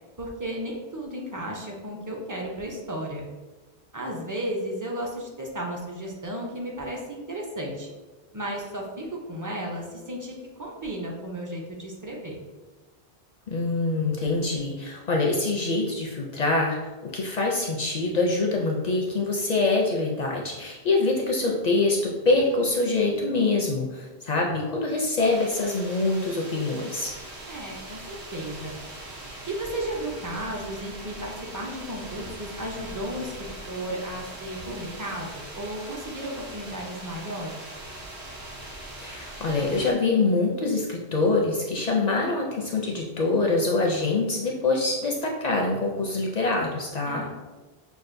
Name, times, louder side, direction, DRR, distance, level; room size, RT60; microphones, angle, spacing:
voice 1, 0.2-3.2 3.9-7.9 8.3-12.4 27.5-28.7 29.5-37.6 47.1-47.3, right 1 dB, 25° right, -1 dB, 0.5 m, -34 dB
voice 2, 13.5-27.1 39.0-47.2, left 3 dB, 55° left, 0 dB, 0.5 m, -25 dB
sound 1, 25.2-39.9, right 1 dB, 90° right, 1.2 m, -41 dB
6.0 x 2.4 x 2.5 m, 1.2 s
omnidirectional pair, 1.1 m